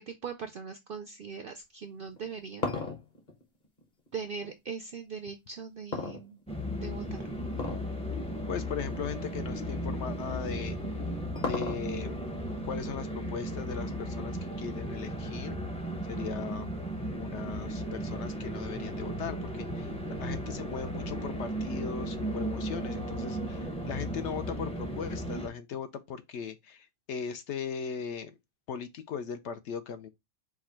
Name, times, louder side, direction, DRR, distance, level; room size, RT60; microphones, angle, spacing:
voice 1, 0.0-2.8 4.1-6.4 6.7-7.2, right 6 dB, 65° right, 0.5 m, -40 dB
sound 1, 2.1-4.5 5.9-6.8 7.5-7.9 8.3-8.4 9.1-9.3 10.6-12.1, left 3 dB, 35° left, 1.1 m, -35 dB
sound 2, 6.5-25.5, equal, 10° left, 0.4 m, -35 dB
voice 2, 8.5-10.8 11.4-12.2 12.6-15.6 16.1-16.7 17.1-19.9 20.2-28.3 28.7-30.1, left 7 dB, 65° left, 0.8 m, -38 dB
4.7 x 2.2 x 4.3 m
omnidirectional pair, 1.4 m